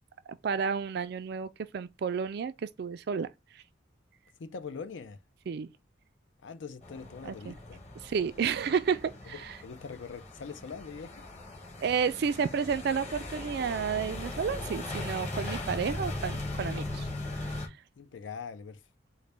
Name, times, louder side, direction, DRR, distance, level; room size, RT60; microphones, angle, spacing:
voice 1, 0.3-3.3 5.5-5.7 7.3-7.5 8.0-9.6 11.8-17.7, right 6 dB, 60° right, 0.3 m, -31 dB
voice 2, 4.4-5.2 6.4-7.8 9.3-11.3 18.0-18.8, left 5 dB, 80° left, 0.5 m, -42 dB
sound 1, 6.8-17.7, left 2 dB, 35° left, 1.0 m, -39 dB
3.9 x 2.2 x 3.2 m
head